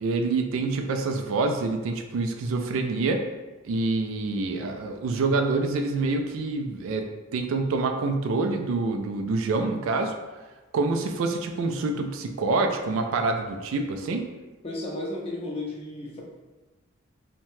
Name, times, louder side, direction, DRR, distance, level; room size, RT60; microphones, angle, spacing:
voice 1, 0.0-3.2 3.6-7.1 7.3-10.1 10.7-14.3, right 3 dB, 70° right, 5 dB, 0.3 m, -26 dB
voice 2, 14.6-16.2, left 2 dB, 30° left, -2 dB, 0.4 m, -33 dB
2.7 x 2.1 x 3.0 m, 1.2 s
head